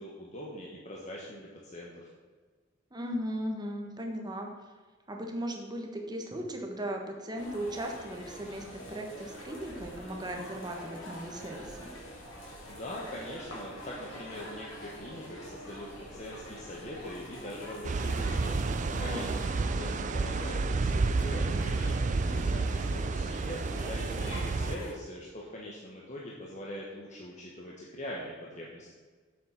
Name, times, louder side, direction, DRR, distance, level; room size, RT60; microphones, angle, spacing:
voice 1, 0.0-2.1 12.7-28.9, left 1 dB, 40° left, -4 dB, 1.4 m, -42 dB
voice 2, 2.9-4.5 5.1-11.9 19.1-19.4, equal, 20° right, 2 dB, 1.4 m, -37 dB
sound 1, 7.4-24.9, equal, 85° left, 3.0 m, -45 dB
sound 2, 17.8-24.8, right 3 dB, 40° right, 0.4 m, -30 dB
7.5 x 7.4 x 5.9 m, 1.4 s
head